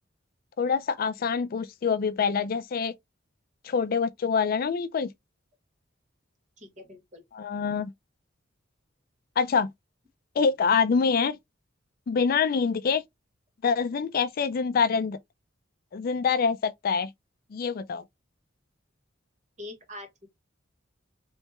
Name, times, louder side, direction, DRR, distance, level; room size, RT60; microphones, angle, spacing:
voice 1, 0.6-2.9 3.6-5.1 7.3-7.9 9.4-9.7 10.4-11.4 12.1-13.0 13.6-15.2 15.9-17.1 17.5-18.0, left 5 dB, 50° left, 0.4 m, -25 dB
voice 2, 6.6-7.2 19.6-20.3, left 2 dB, 40° right, 1.5 m, -43 dB
3.2 x 3.2 x 2.9 m
head